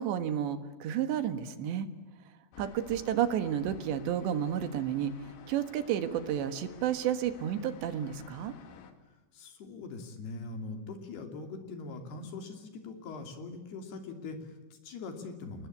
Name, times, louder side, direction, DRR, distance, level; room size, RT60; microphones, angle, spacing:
voice 1, 0.0-1.9 2.6-5.1 5.5-8.5, right 10 dB, 75° right, 11 dB, 3.7 m, -31 dB
sound 1, 2.5-8.9, left 6 dB, 90° left, 4.5 m, -52 dB
voice 2, 9.3-15.7, left 3 dB, 65° left, 6 dB, 4.8 m, -42 dB
28.0 x 20.5 x 8.6 m, 1.2 s
omnidirectional pair, 5.1 m